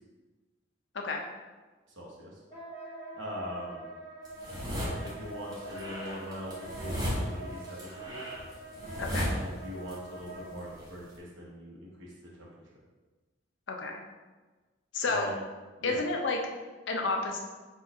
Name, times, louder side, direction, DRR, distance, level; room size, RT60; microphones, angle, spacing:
voice 1, 2.0-2.4 3.1-3.9 5.0-8.2 9.2-12.5 15.0-15.4 15.8-16.0, equal, 70° right, -4 dB, 1.0 m, -42 dB
Wind instrument woodwind instrument, 2.5-10.7, right 2 dB, 20° left, 1.4 m, -45 dB
sound 1, 4.2-5.1 5.5-9.9 10.2-11.1, equal, 20° right, 0.9 m, -35 dB
voice 2, 9.0-9.3 13.7-14.0 14.9-15.3 15.8-16.4 16.9-17.4, left 3 dB, 65° left, 2 dB, 0.6 m, -30 dB
4.4 x 2.4 x 4.5 m, 1.3 s
head